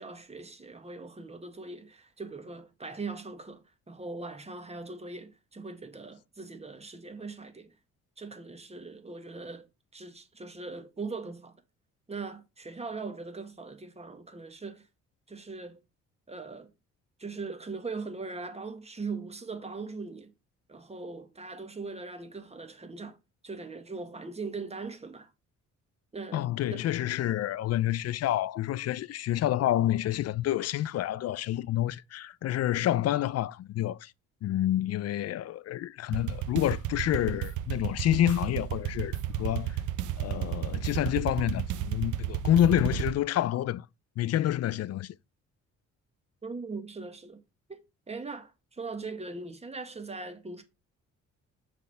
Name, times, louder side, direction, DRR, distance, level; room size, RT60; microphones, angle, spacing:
voice 1, 0.0-7.7 8.2-9.7 9.9-11.5 12.1-14.9 15.3-15.8 16.3-16.7 17.2-20.3 20.7-23.2 23.4-25.3 26.1-26.9 46.4-47.4 47.7-50.6, right 4 dB, 20° right, 1.5 m, -40 dB
voice 2, 26.3-34.1 34.4-39.8 40.2-43.9 44.2-45.1, left 12 dB, 55° left, 0.4 m, -28 dB
sound 1, 36.1-43.1, right 12 dB, 80° right, 0.7 m, -33 dB
6.3 x 3.6 x 5.5 m
cardioid pair, 90°, 30 cm